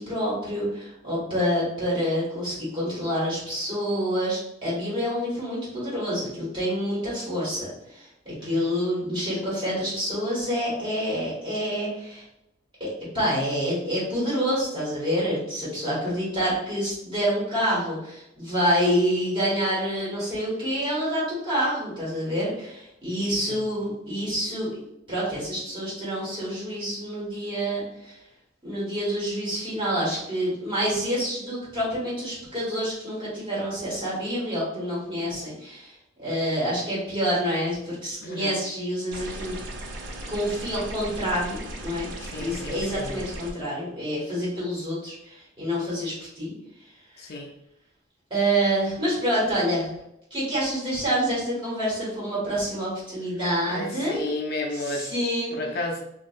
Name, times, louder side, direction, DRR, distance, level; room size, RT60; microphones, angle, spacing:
voice 1, 0.0-12.2 12.8-24.8 25.1-28.2 28.6-39.6 40.3-46.5 48.3-49.9 50.3-54.2 54.7-55.5, equal, 25° right, -8 dB, 1.5 m, -27 dB
voice 2, 8.4-8.8 23.5-23.7 38.2-38.6 42.2-43.2 47.2-47.5 53.7-55.1 55.5-56.0, left 2 dB, 50° left, 1 dB, 0.4 m, -33 dB
sound 1, 39.1-43.5, right 1 dB, 75° right, 0.5 m, -37 dB
2.9 x 2.7 x 2.4 m, 0.82 s
head